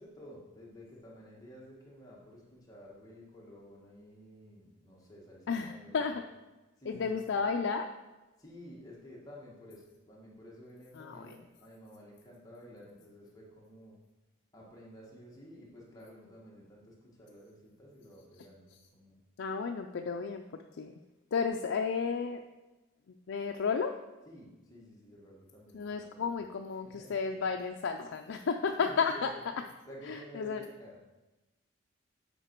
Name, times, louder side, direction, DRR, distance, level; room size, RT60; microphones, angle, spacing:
voice 1, 0.0-2.4 2.7-6.1 6.8-7.1 8.4-14.0 14.5-16.9 17.2-19.1 24.3-25.8 26.1-26.3 26.8-27.1 28.4-28.5 28.8-29.2 29.9-31.0, equal, 15° left, -4 dB, 1.4 m, -52 dB
voice 2, 5.5-6.2 6.9-7.9 10.9-11.3 19.4-20.4 20.8-20.9 21.3-22.4 23.3-24.0 25.7-29.3 30.0-30.7, left 5 dB, 65° left, 4 dB, 0.4 m, -32 dB
7.9 x 5.0 x 4.4 m, 1.1 s
head